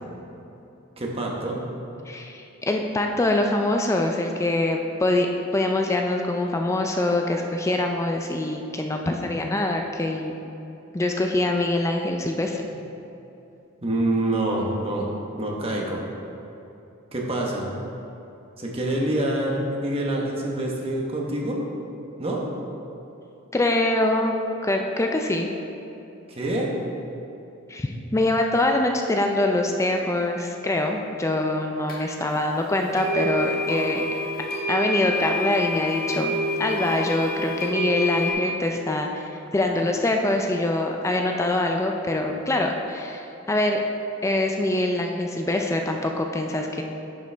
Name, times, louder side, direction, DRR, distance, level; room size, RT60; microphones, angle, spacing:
voice 1, 1.0-1.6 13.8-15.1 15.4-16.0 17.1-17.7 18.6-21.6 22.2-22.4 26.3-26.7, right 1 dB, 30° right, -2 dB, 1.1 m, -26 dB
voice 2, 2.1-10.3 10.9-12.6 23.5-24.3 24.6-25.5 27.7-34.1 34.7-39.2 39.5-43.8 44.2-46.8, left 2 dB, 15° left, 3 dB, 0.4 m, -24 dB
sound 1, 31.9-32.0 32.9-38.3, left 1 dB, 50° left, 1.3 m, -27 dB
10.5 x 5.2 x 3.4 m, 2.9 s
head